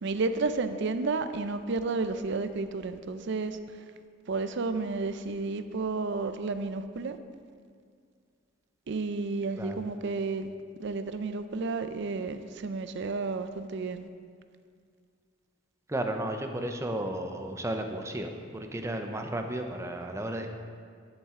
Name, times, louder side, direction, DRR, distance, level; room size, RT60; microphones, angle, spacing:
voice 1, 0.0-3.6 4.3-7.2 8.9-10.5 10.8-14.1, right 3 dB, 60° right, 10 dB, 0.5 m, -31 dB
voice 2, 15.9-20.5, right 1 dB, 15° right, 4 dB, 0.6 m, -33 dB
11.5 x 7.2 x 3.7 m, 2.1 s
head